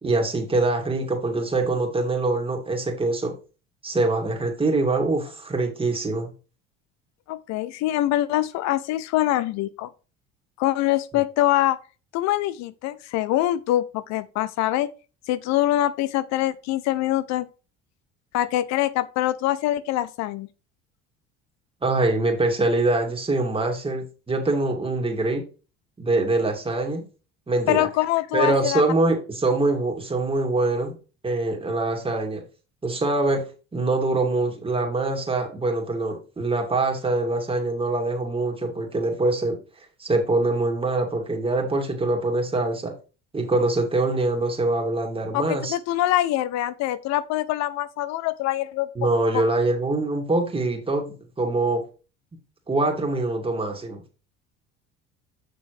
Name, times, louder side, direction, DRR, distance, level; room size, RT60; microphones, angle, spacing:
voice 1, 0.0-3.3 3.8-6.3 21.8-25.4 26.0-27.0 27.5-27.9 28.3-30.9 31.2-32.4 32.8-33.4 33.7-39.6 40.0-42.9 43.3-45.8 49.0-51.8 52.7-54.0, right 2 dB, 20° right, 2.4 m, -24 dB
voice 2, 7.3-9.9 10.6-11.8 12.1-14.9 15.3-17.5 18.3-20.5 27.7-28.8 45.3-48.9 49.3-49.4, left 14 dB, 65° left, 0.5 m, -24 dB
7.0 x 6.3 x 3.2 m
supercardioid pair, 85°, 29 cm